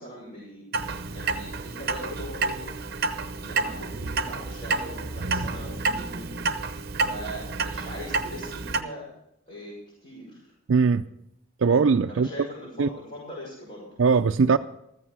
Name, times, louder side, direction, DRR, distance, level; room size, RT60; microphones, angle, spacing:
voice 1, 0.0-3.1 3.4-6.6 7.1-9.1 9.5-10.5 12.1-13.9, equal, 35° left, 6.1 m, -41 dB
Clock, 0.7-8.8, right 3 dB, 50° right, 0.8 m, -30 dB
voice 2, 10.7-11.0 11.6-12.3 12.8-12.9 14.0-14.6, right 5 dB, 70° right, 0.4 m, -20 dB
14.5 x 14.5 x 4.7 m
head